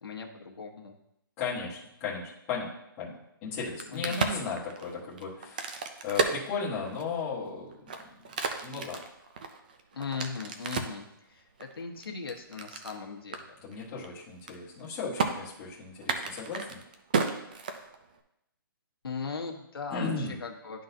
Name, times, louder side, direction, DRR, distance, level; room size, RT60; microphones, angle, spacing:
voice 1, 0.0-0.9 3.9-4.2 9.9-13.4 19.0-20.8, left 5 dB, 90° left, 1 dB, 1.2 m, -38 dB
voice 2, 1.4-8.1 8.6-9.0 13.6-16.8 19.9-20.4, left 4 dB, 15° left, -7 dB, 1.2 m, -36 dB
Crack, 3.5-7.2 7.7-11.0 11.6-13.0 13.3-13.4 13.7-14.0 14.3-14.8 15.2-15.3 16.0-18.2, right 5 dB, 20° right, 0.4 m, -33 dB
11.5 x 3.9 x 2.7 m, 0.81 s
hypercardioid pair, 175°, 12 cm